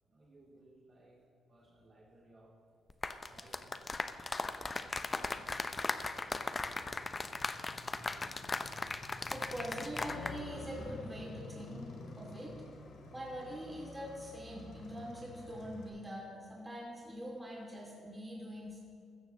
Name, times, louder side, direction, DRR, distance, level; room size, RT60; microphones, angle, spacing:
voice 1, 0.1-1.2 1.5-2.6 3.2-4.5 5.2-5.6, right 2 dB, 40° right, -4 dB, 3.1 m, -62 dB
sound 1, 2.9-10.4 10.6-10.9, left 3 dB, 25° left, 0.6 m, -38 dB
Motorcycle, 3.3-15.9, left 3 dB, 70° left, 2.3 m, -51 dB
voice 2, 4.6-5.2 8.2-8.6 9.2-12.5 13.1-18.8, equal, 15° right, -3 dB, 2.7 m, -44 dB
16.0 x 13.5 x 3.1 m, 2.2 s
cardioid pair, 90°, 0 cm